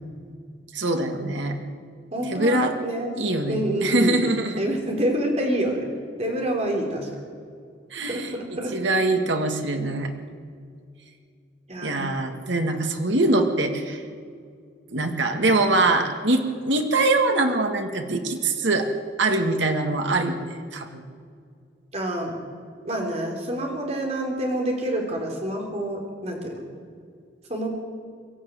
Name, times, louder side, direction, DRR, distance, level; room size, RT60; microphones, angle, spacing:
voice 1, 0.7-1.6 2.3-2.7 3.2-4.6 7.9-8.3 8.7-10.1 11.8-14.0 14.9-18.9 19.2-21.0, right 2 dB, 75° right, 4 dB, 2.0 m, -23 dB
voice 2, 2.1-3.1 3.5-4.2 4.6-5.9 6.2-7.1 8.1-8.7 11.7-12.1 21.9-22.3 22.8-26.6 27.5-27.7, right 1 dB, 35° right, 1 dB, 3.9 m, -27 dB
23.5 x 13.0 x 9.4 m, 2.2 s
head